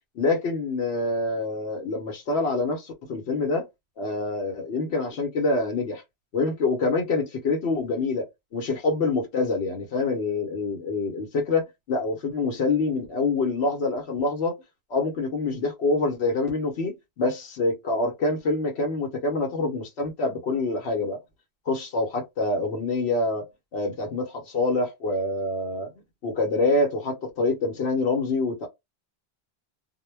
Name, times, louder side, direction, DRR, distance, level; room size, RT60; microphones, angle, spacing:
voice 1, 0.1-3.6 4.0-6.0 6.3-8.3 8.5-14.6 14.9-21.2 21.7-23.5 23.7-25.9 26.2-28.7, left 3 dB, 85° left, 1.0 m, -26 dB
2.2 x 2.1 x 3.2 m
omnidirectional pair, 1.1 m